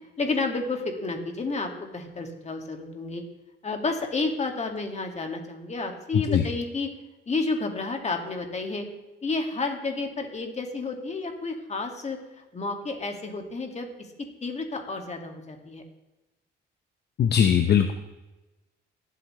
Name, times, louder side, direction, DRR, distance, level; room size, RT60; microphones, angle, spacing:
voice 1, 0.2-3.2 3.6-6.9 7.3-8.9 9.2-14.1 14.4-15.8, left 3 dB, 35° left, 3 dB, 2.2 m, -31 dB
voice 2, 6.1-6.5 17.2-17.9, left 8 dB, 55° left, 6 dB, 0.8 m, -20 dB
20.0 x 7.8 x 3.3 m, 1.0 s
cardioid pair, 90°, 20 cm